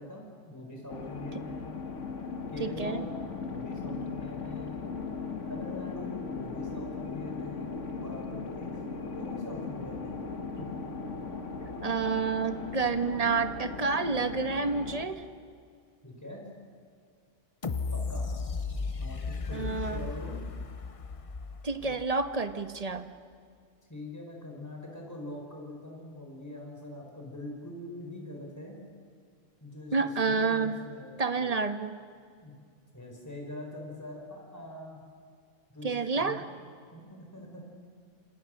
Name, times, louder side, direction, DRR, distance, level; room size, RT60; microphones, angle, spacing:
voice 1, 0.0-1.7 2.5-4.8 5.5-8.8 9.1-10.2 10.5-10.8 16.0-16.4 17.9-18.3 19.0-20.4 21.8-21.9 23.9-28.8 29.6-31.1 31.4-31.5 32.4-32.6 32.9-35.0 35.7-36.4 36.9-37.6, left 1 dB, 15° left, 0 dB, 4.9 m, -43 dB
sound 1, 0.9-15.1, left 4 dB, 75° left, 2.1 m, -38 dB
voice 2, 2.6-3.0 11.8-15.2 19.5-20.1 21.6-23.1 29.9-30.8 31.2-31.9 35.8-36.4, right 4 dB, 30° right, 9 dB, 1.2 m, -29 dB
sound 2, 17.6-22.5 23.0-23.1, left 4 dB, 35° left, 0.7 m, -35 dB
28.0 x 26.5 x 6.6 m, 2.1 s
omnidirectional pair, 1.3 m